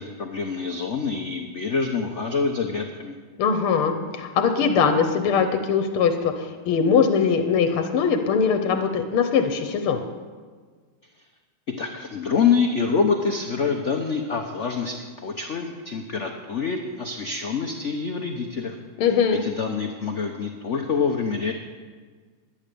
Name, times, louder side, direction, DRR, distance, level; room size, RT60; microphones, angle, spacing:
voice 1, 0.0-3.2 11.8-18.8 19.4-21.5, left 5 dB, 60° left, 4 dB, 0.7 m, -26 dB
voice 2, 3.4-10.0 19.0-19.4, left 6 dB, 85° left, 7 dB, 1.8 m, -21 dB
12.0 x 10.0 x 6.8 m, 1.5 s
omnidirectional pair, 2.4 m